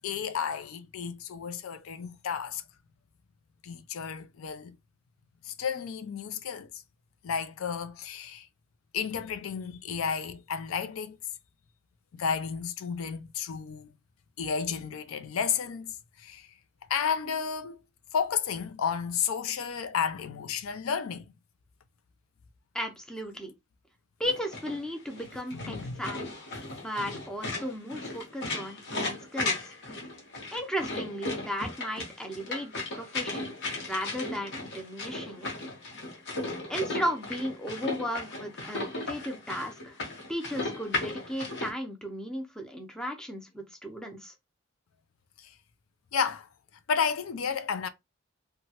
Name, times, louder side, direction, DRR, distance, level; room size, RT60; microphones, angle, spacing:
voice 1, 0.0-2.6 3.6-4.7 5.4-6.8 7.2-8.5 8.9-11.2 12.1-13.9 14.4-16.5 16.9-17.8 18.1-21.3 25.5-26.0 26.5-26.7 45.4-45.5 46.1-46.5 46.9-47.9, left 7 dB, 80° left, 0.4 m, -32 dB
voice 2, 22.7-23.5 24.2-26.3 26.8-29.7 30.5-33.5 33.8-35.5 36.7-40.0 40.3-44.3, equal, 5° left, 0.6 m, -35 dB
sound 1, 24.2-41.7, left 2 dB, 55° left, 1.1 m, -36 dB
2.8 x 2.3 x 2.8 m
head